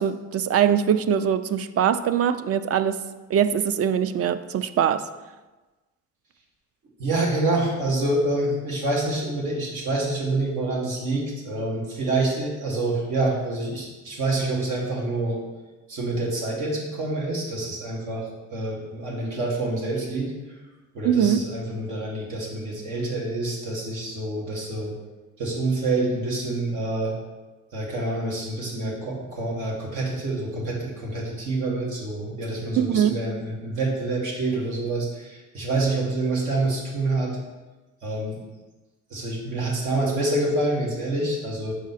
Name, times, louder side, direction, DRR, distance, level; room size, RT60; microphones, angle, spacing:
voice 1, 0.0-3.0 3.3-5.0 21.0-21.4 32.8-33.2, right 9 dB, 50° right, 12 dB, 0.4 m, -22 dB
voice 2, 7.0-15.4 15.9-18.3 18.5-20.3 20.9-24.9 25.4-27.1 27.7-37.4 38.0-38.4 39.1-41.7, right 2 dB, 85° right, -3 dB, 1.7 m, -27 dB
6.2 x 4.8 x 4.1 m, 1.2 s
cardioid pair, 90°, 30 cm